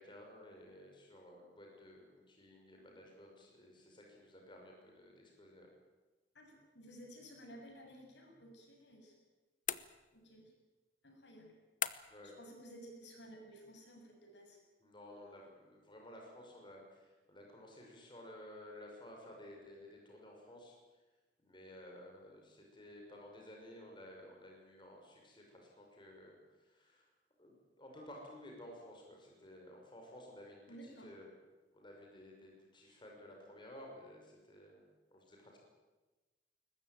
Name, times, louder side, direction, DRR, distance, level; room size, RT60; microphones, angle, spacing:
voice 1, 0.0-5.7 12.1-12.3 14.8-20.8 21.4-27.1 27.4-31.3 31.7-34.8 35.1-35.6, left 1 dB, 30° left, 0 dB, 5.7 m, -54 dB
voice 2, 6.3-9.2 10.1-10.5 11.0-11.5 12.4-14.6 30.7-31.1, equal, 85° left, 2 dB, 7.3 m, -54 dB
sound 1, 9.7-10.4 11.8-12.3, left 10 dB, 50° left, 0.9 m, -40 dB
22.0 x 20.0 x 9.3 m, 1.2 s
head